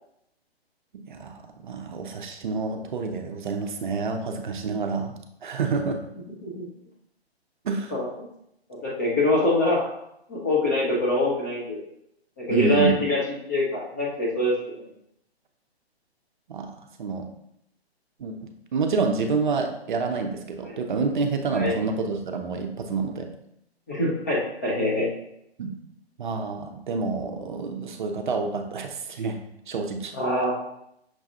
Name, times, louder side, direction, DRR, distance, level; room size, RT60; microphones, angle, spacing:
voice 1, 1.1-5.1 5.4-6.0 7.6-7.9 12.5-13.0 16.5-17.3 18.2-23.3 25.6-25.7 26.2-29.4 29.7-30.1, right 4 dB, 50° right, 5 dB, 0.5 m, -28 dB
voice 2, 8.8-9.9 10.3-11.8 12.4-13.2 13.5-14.8 20.6-20.8 21.5-21.8 23.9-25.1 30.1-30.5, left 1 dB, 15° left, -5 dB, 0.4 m, -24 dB
5.9 x 2.3 x 2.7 m, 0.77 s
figure-of-eight pair, 130°, 32 cm